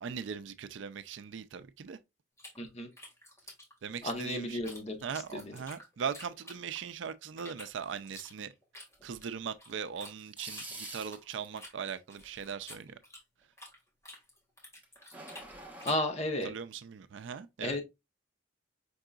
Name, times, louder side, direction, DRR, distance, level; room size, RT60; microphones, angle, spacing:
voice 1, 0.0-2.0 3.8-4.6 5.0-8.5 9.0-13.0 16.4-17.8, right 7 dB, 70° right, 0.4 m, -40 dB
sound 1, 2.4-4.8 5.1-7.0 7.4-10.1 10.5-13.8 14.0-16.1, left 1 dB, 15° left, 1.7 m, -50 dB
voice 2, 2.6-2.9 4.0-5.0 5.3-5.5 15.8-16.5 17.6-17.8, left 1 dB, 35° left, 1.0 m, -33 dB
sound 2, 10.2-11.5 14.8-16.0, right 2 dB, 10° right, 1.0 m, -45 dB
5.3 x 3.8 x 2.3 m
head